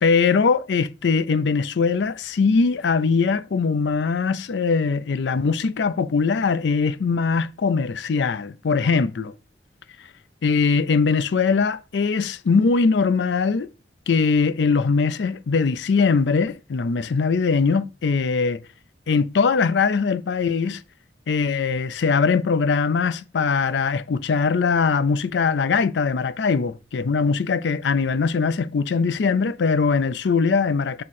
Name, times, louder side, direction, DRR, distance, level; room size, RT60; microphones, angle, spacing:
voice 1, 0.0-9.3 10.4-13.7 14.1-18.6 19.1-20.8 21.3-31.0, left 5 dB, 75° left, 0.4 m, -21 dB
6.5 x 3.7 x 4.2 m
head